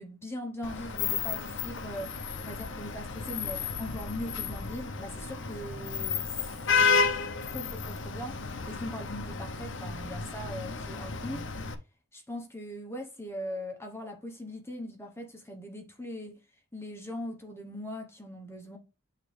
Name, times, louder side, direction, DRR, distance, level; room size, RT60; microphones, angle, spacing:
voice 1, 0.0-6.3 6.8-11.5 12.1-16.4 16.7-18.8, equal, 10° left, 0.9 m, -40 dB
Vehicle horn car horn honking / Traffic noise roadway noise, 0.6-11.7, left 5 dB, 65° left, 0.7 m, -32 dB
8.5 x 3.7 x 3.2 m
head